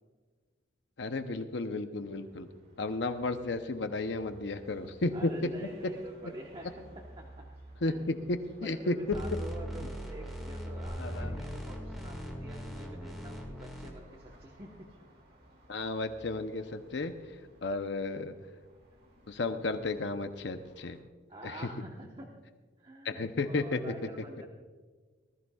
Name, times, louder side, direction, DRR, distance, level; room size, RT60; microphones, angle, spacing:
voice 1, 1.0-2.5 2.8-5.3 5.8-5.9 7.8-8.9 9.8-9.9 11.0-11.4 15.7-17.1 17.6-18.3 19.3-21.0 21.4-21.7 23.0-24.1, left 2 dB, 60° left, 8 dB, 0.7 m, -33 dB
sound 1, 1.9-21.0, right 1 dB, 55° right, 2.3 m, -58 dB
voice 2, 5.1-6.7 7.2-7.5 7.8-8.1 8.6-14.9 21.3-22.3 22.8-24.4, right 1 dB, 25° right, -1 dB, 1.1 m, -47 dB
sound 2, 9.1-13.9, equal, ahead, 1.9 m, -40 dB
sound 3, 10.8-13.6, equal, 90° right, 1.9 m, -45 dB
19.5 x 14.0 x 2.4 m, 1.4 s
head